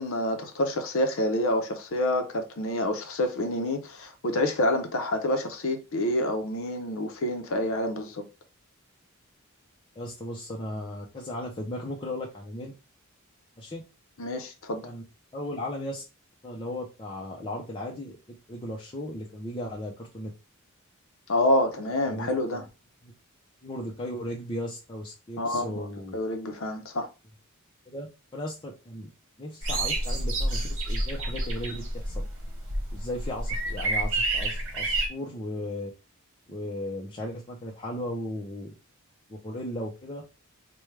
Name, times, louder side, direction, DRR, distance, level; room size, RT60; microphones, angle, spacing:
voice 1, 0.0-8.2 14.2-14.9 21.3-22.6 25.4-25.8 26.1-27.1, left 1 dB, 60° left, 0.6 m, -27 dB
voice 2, 10.0-12.7 13.6-13.8 14.8-15.0 15.3-16.0 16.4-18.2 18.5-20.3 22.1-22.6 23.0-23.1 23.6-26.2 27.9-28.1 28.3-29.1 29.4-32.2 32.9-35.9 36.5-38.7 39.3-40.2, left 1 dB, 20° left, 0.5 m, -36 dB
sound 1, 29.6-35.1, right 2 dB, 60° right, 1.2 m, -29 dB
4.7 x 2.2 x 3.2 m
head